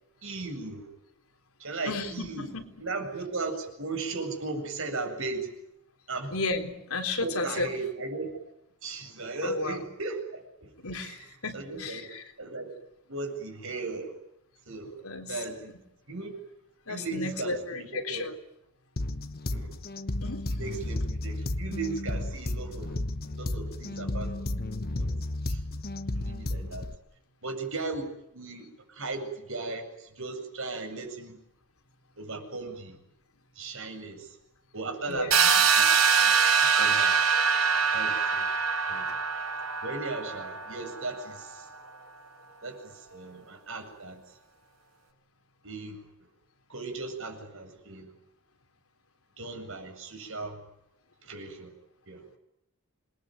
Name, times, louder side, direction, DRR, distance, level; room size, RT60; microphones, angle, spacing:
voice 1, 0.2-0.9 1.6-2.5 2.8-5.5 6.1-6.3 7.2-8.4 8.8-11.3 11.5-12.7 13.1-14.2 14.7-14.9 15.3-15.7 16.1-16.4 16.9-18.3 19.5-19.7 20.5-23.0 23.3-25.1 25.4-25.6 26.1-26.9 27.4-31.4 32.2-33.0 33.5-34.4 34.7-35.9 36.2-37.2 37.9-38.5 38.9-39.1 39.8-41.7 42.6-44.4 45.6-46.3 46.7-48.1 49.4-50.7 51.2-51.7 52.1-52.3, right 3 dB, 65° right, 4 dB, 7.9 m, -37 dB
voice 2, 1.8-2.6 6.3-7.7 9.4-9.8 10.8-12.2 15.0-15.3 16.9-18.4 20.2-20.4 35.1-35.5, left 3 dB, 75° left, 6 dB, 3.6 m, -33 dB
sound 1, 19.0-27.0, left 1 dB, 45° left, 1.2 m, -33 dB
sound 2, 35.3-41.1, right 6 dB, 85° right, 5.3 m, -24 dB
27.5 x 21.5 x 9.3 m, 0.82 s
head